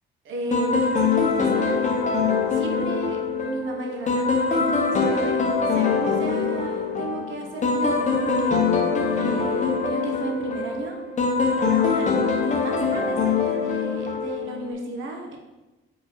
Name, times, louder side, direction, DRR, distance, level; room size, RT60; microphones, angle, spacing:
voice 1, 0.2-1.7 2.5-3.2 3.4-5.4 5.7-8.5 9.1-11.0 11.6-15.4, right 2 dB, 75° right, 2 dB, 1.2 m, -34 dB
sound 1, 0.5-14.7, left 5 dB, 35° left, 1.0 m, -23 dB
5.1 x 4.2 x 4.5 m, 1.1 s
cardioid pair, 90°, 20 cm